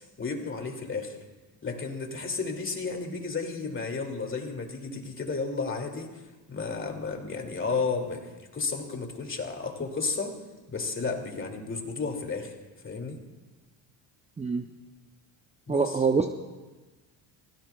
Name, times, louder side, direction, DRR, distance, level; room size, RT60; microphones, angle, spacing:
voice 1, 0.2-1.2 1.6-6.1 6.5-10.3 10.7-12.5 12.8-13.2 15.7-15.9, left 4 dB, 30° left, 2 dB, 2.5 m, -32 dB
voice 2, 14.4-14.7 15.7-16.3, right 5 dB, 15° right, 5 dB, 0.6 m, -25 dB
27.5 x 16.5 x 2.3 m, 1.2 s
cardioid pair, 95°, 43 cm